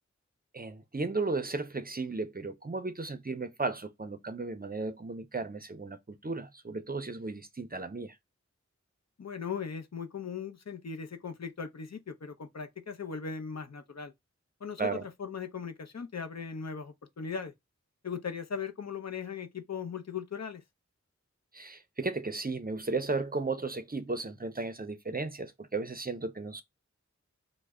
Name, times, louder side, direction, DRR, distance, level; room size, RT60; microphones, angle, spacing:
voice 1, 0.5-8.1 14.8-15.0 21.5-26.6, right 3 dB, 30° right, 0.5 m, -35 dB
voice 2, 9.2-14.1 14.6-17.5 18.0-20.6, left 6 dB, 65° left, 0.6 m, -38 dB
3.2 x 2.1 x 3.5 m
wide cardioid pair, 50°, 29 cm